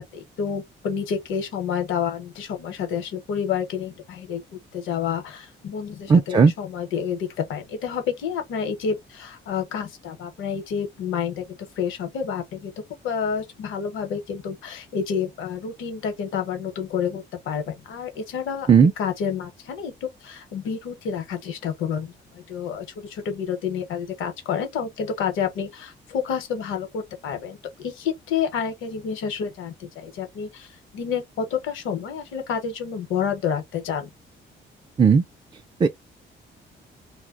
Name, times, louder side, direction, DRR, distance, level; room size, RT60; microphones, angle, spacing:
voice 1, 0.0-12.7 13.0-34.1, left 7 dB, 85° left, 0.8 m, -29 dB
voice 2, 6.1-6.5 18.7-18.9 35.0-35.2 35.8-35.9, right 5 dB, 25° right, 0.3 m, -15 dB
2.2 x 2.0 x 3.6 m
cardioid pair, 90°, 20 cm